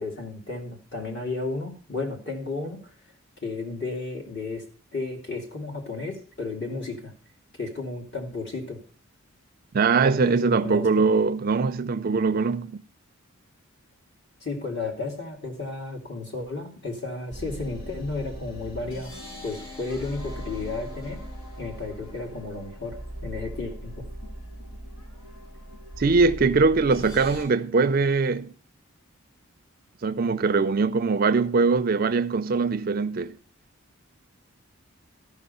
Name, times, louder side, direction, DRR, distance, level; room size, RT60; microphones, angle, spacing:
voice 1, 0.0-2.8 3.4-4.6 4.9-7.1 7.6-8.8 10.2-11.0 14.4-19.1 19.4-21.2 21.6-23.0 23.2-24.1, left 3 dB, 50° left, 2.8 m, -33 dB
voice 2, 9.7-12.8 26.0-28.5 30.0-33.4, right 4 dB, 40° right, 0.4 m, -22 dB
sound 1, 17.3-27.4, equal, 80° left, 5.2 m, -39 dB
13.0 x 5.9 x 5.5 m
head